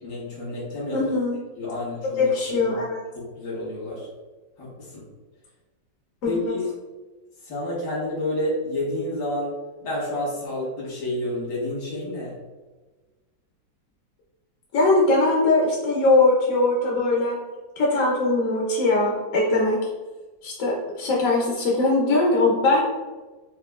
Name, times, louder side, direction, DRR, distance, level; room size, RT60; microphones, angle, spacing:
voice 1, 0.0-1.0 1.6-2.3 2.6-2.7 3.2-4.1 4.6-5.0 6.2-6.7 7.4-9.6 9.8-12.3, left 1 dB, 80° left, -6 dB, 2.2 m, -29 dB
voice 2, 0.9-1.4 2.2-3.0 6.2-6.5 14.7-17.3 17.8-19.8 20.4-22.8, left 2 dB, 60° left, -3 dB, 0.9 m, -21 dB
5.1 x 2.4 x 2.3 m, 1.3 s
omnidirectional pair, 2.1 m